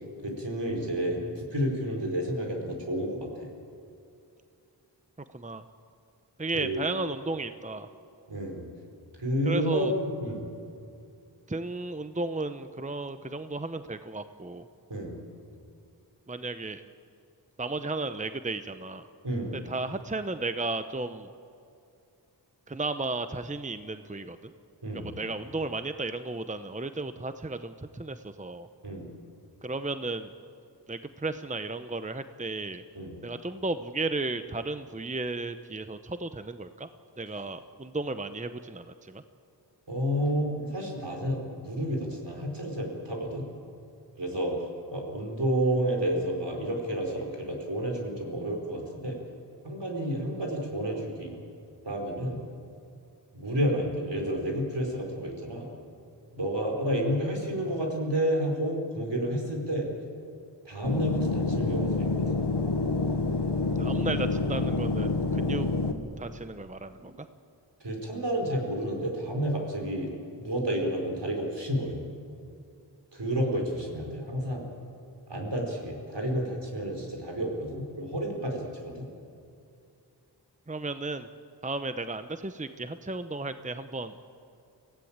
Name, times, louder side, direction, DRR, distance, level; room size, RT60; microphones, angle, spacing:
voice 1, 0.2-3.5 6.5-6.8 8.3-8.6 9.2-10.5 14.9-15.1 19.2-19.5 24.8-25.1 28.8-29.1 32.9-33.2 39.9-43.4 44.2-44.5 44.9-49.2 49.6-51.3 51.8-52.4 53.3-55.7 56.3-59.9 60.6-62.4 67.8-70.1 70.4-72.0 73.1-74.7 75.3-79.0, equal, 70° right, 1 dB, 4.8 m, -30 dB
voice 2, 6.4-7.9 9.4-9.9 11.5-14.7 16.3-16.8 17.6-19.0 19.5-21.3 22.7-24.5 24.9-28.7 29.6-30.3 30.9-32.8 33.2-36.9 37.2-39.2 63.8-65.7 66.2-67.1 80.7-81.3 81.6-84.1, right 2 dB, 15° right, 10 dB, 0.8 m, -34 dB
sound 1, 60.8-65.9, left 3 dB, 65° left, 1.5 m, -27 dB
24.5 x 16.5 x 8.8 m, 2.5 s
wide cardioid pair, 40°, 44 cm